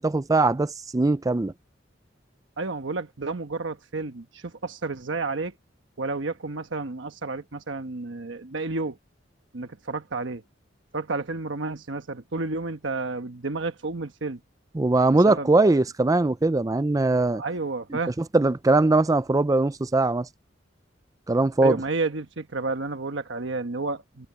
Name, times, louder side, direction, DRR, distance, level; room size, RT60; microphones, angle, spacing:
voice 1, 0.0-1.5 14.7-17.4 18.2-20.3 21.3-21.8, right 2 dB, 20° right, 0.4 m, -21 dB
voice 2, 2.6-5.5 6.0-9.0 9.5-10.4 10.9-14.4 15.3-15.8 17.4-18.1 21.6-24.3, right 3 dB, 70° right, 1.2 m, -31 dB
head